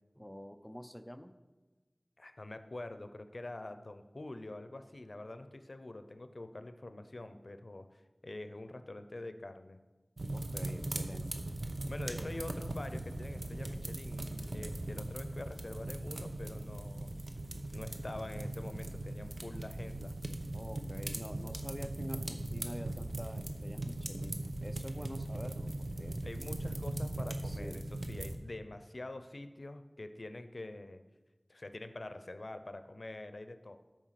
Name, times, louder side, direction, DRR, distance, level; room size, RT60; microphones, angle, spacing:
voice 1, 0.1-1.4 10.3-11.5 12.1-12.3 20.5-26.3 27.4-27.9, equal, 10° left, 9 dB, 0.6 m, -47 dB
voice 2, 2.2-9.8 11.9-17.1 17.7-20.1 26.2-31.0 31.5-33.8, left 2 dB, 80° left, 9 dB, 0.6 m, -45 dB
sound 1, 10.2-28.4, right 1 dB, 90° right, 0.8 m, -39 dB
13.0 x 4.6 x 5.8 m, 1.2 s
wide cardioid pair, 45°, 0 cm